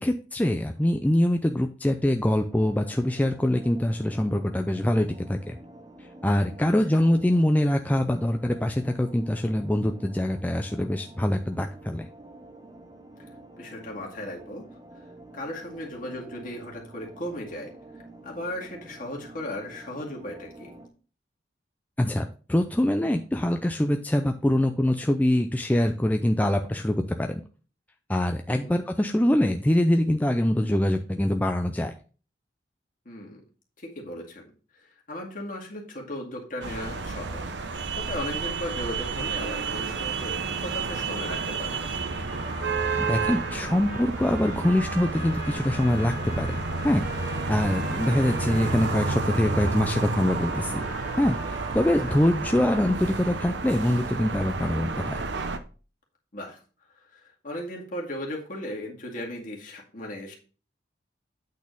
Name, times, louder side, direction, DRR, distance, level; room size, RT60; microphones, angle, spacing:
voice 1, 0.0-5.6 6.2-12.1 22.0-27.4 28.1-31.9 43.0-46.6 46.8-50.8 51.2-55.2, left 1 dB, 10° left, 5 dB, 0.4 m, -24 dB
sound 1, 2.5-20.9, right 1 dB, 20° right, 0.9 m, -48 dB
voice 2, 6.6-7.0 13.6-14.7 15.3-17.7 18.2-20.7 28.5-28.7 33.1-33.4 33.8-34.5 34.7-41.8 52.1-52.2 56.3-56.6 57.0-60.3, left 1 dB, 50° left, -1 dB, 2.1 m, -37 dB
sound 2, 36.6-55.6, right 4 dB, 80° right, 0.7 m, -31 dB
sound 3, 41.7-53.4, equal, 45° right, 1.8 m, -42 dB
8.6 x 4.2 x 5.2 m, 0.37 s
head